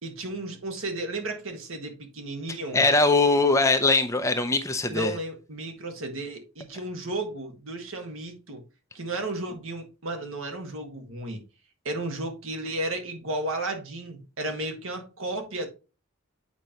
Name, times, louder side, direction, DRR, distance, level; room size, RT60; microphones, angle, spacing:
voice 1, 0.0-2.8 4.9-8.6 8.9-11.4 11.8-15.7, right 2 dB, 65° right, 1.6 m, -33 dB
voice 2, 2.7-5.1, left 3 dB, 15° left, 0.6 m, -21 dB
8.2 x 5.1 x 3.0 m
head